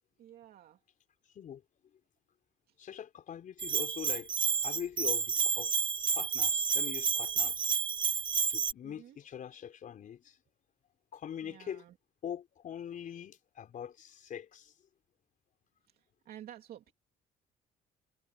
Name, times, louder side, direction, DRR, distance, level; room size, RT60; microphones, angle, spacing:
voice 1, 0.2-0.8 2.7-2.8 8.8-9.2 11.4-12.0 15.9-16.9, right 11 dB, 65° right, 2.9 m, -52 dB
voice 2, 2.8-4.3 4.6-5.7 6.1-7.7 8.5-10.3 11.1-11.8 12.2-14.7, left 9 dB, 50° left, 4.4 m, -43 dB
Bell, 3.6-8.7, right 6 dB, 30° right, 0.7 m, -30 dB
cardioid pair, 110°, 17 cm